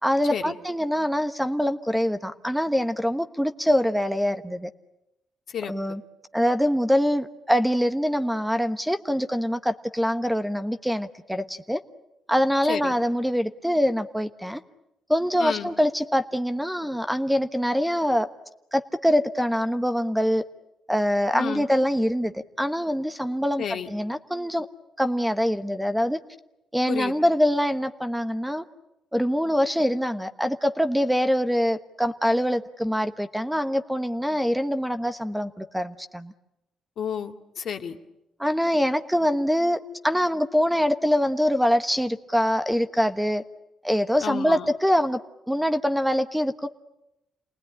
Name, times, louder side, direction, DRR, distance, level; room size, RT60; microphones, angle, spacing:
voice 1, 0.0-4.7 5.7-6.0 6.3-11.8 12.3-14.6 15.1-18.3 18.7-20.4 20.9-24.7 25.0-26.2 26.7-28.6 29.1-36.3 38.4-39.8 40.0-43.4 43.8-45.2 45.5-46.7, equal, 5° right, 1.2 m, -24 dB
voice 2, 5.5-6.0 12.7-12.9 15.4-15.7 21.3-21.7 23.6-23.9 26.9-27.1 37.0-38.0 44.2-44.7, left 8 dB, 65° left, 2.2 m, -31 dB
28.5 x 19.5 x 10.0 m
cardioid pair, 90°, 0 cm